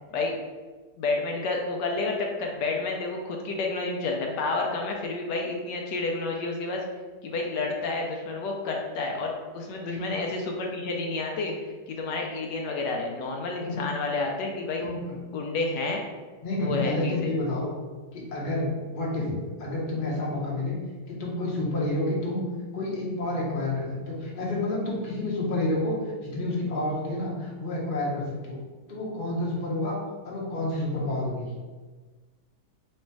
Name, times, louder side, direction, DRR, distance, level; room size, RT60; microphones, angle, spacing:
voice 1, 1.0-6.8 7.2-11.5 11.9-14.8 15.3-16.0 16.6-17.3, left 3 dB, 80° left, 1 dB, 1.2 m, -30 dB
voice 2, 14.8-15.1 16.4-17.7 18.1-19.3 19.6-20.8 21.1-28.6 28.9-29.9 30.2-31.5, left 2 dB, 35° left, -4 dB, 1.0 m, -29 dB
3.2 x 3.2 x 4.5 m, 1.4 s
omnidirectional pair, 1.9 m